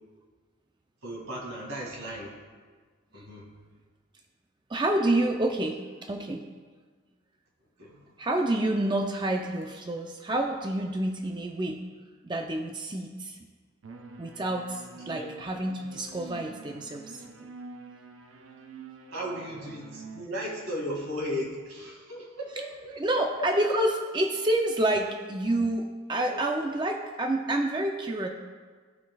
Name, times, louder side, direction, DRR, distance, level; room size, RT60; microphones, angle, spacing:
voice 1, 1.0-2.3 3.1-3.5 7.8-8.0 15.1-15.3 19.1-23.5 26.3-26.4, equal, 85° right, -2 dB, 2.2 m, -36 dB
voice 2, 4.7-6.4 8.2-11.8 12.2-13.4 14.2-17.3 22.9-28.3, right 1 dB, 20° right, 3 dB, 0.5 m, -28 dB
sound 1, 13.8-20.3, right 3 dB, 70° right, 0.6 m, -47 dB
17.5 x 5.9 x 2.3 m, 1.5 s
head